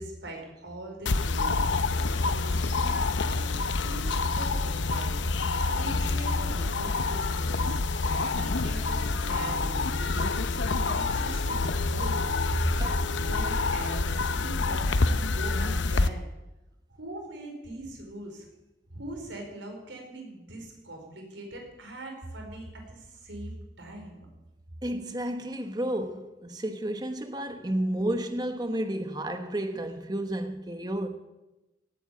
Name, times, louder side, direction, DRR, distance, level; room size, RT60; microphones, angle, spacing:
voice 1, 0.0-7.8 8.2-12.2 12.8-16.3 16.9-18.5 18.9-24.3, right 1 dB, 85° right, 5.0 m, -42 dB
sound 1, 1.1-16.1, left 3 dB, 80° left, 0.7 m, -27 dB
voice 2, 12.6-12.9 24.8-31.1, right 1 dB, 20° right, 1.2 m, -31 dB
18.0 x 9.3 x 8.5 m
head